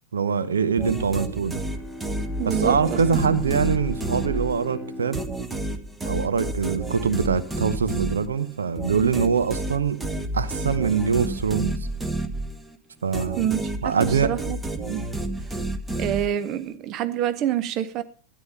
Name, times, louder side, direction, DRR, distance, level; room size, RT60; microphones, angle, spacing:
voice 1, 0.1-1.6 2.4-5.2 6.0-10.0 10.3-11.7 13.0-13.5 13.8-14.3, right 6 dB, 70° right, 0.9 m, -23 dB
sound 1, 0.8-4.7 5.1-12.8 13.1-16.6, right 2 dB, 10° right, 1.4 m, -30 dB
Bowed string instrument, 1.3-6.9, left 3 dB, 5° left, 2.3 m, -39 dB
voice 2, 2.4-3.2 13.4-14.6 14.9-15.1 16.0-18.0, right 11 dB, 35° right, 0.9 m, -27 dB
13.0 x 10.5 x 5.5 m
figure-of-eight pair, 90°, 0 cm